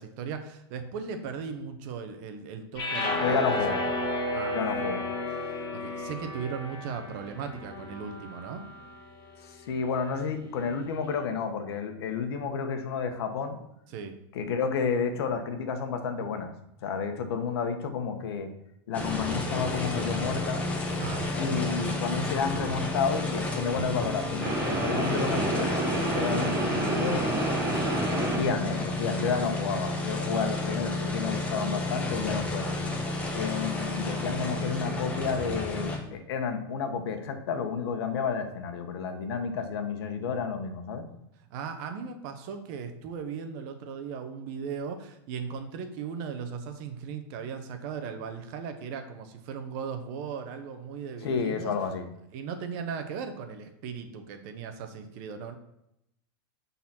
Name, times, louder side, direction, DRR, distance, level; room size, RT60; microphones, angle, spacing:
voice 1, 0.0-3.8 4.3-4.6 5.4-8.7 13.9-14.2 21.0-21.3 27.7-28.0 41.5-51.7 52.3-55.5, right 6 dB, 50° right, 7 dB, 1.0 m, -37 dB
sound 1, 2.8-9.0, left 2 dB, 35° left, 2.1 m, -32 dB
voice 2, 3.2-3.8 4.5-5.0 9.4-13.6 14.3-16.5 16.8-18.5 18.9-20.6 21.4-27.3 28.1-32.8 33.3-41.1 51.2-52.1, left 6 dB, 75° left, 6 dB, 1.3 m, -31 dB
sound 2, 18.9-36.0, left 2 dB, 10° left, 1.2 m, -31 dB
sound 3, 24.4-28.6, right 2 dB, 20° right, 2.9 m, -29 dB
10.0 x 4.2 x 4.4 m, 0.80 s
supercardioid pair, 145°, 13 cm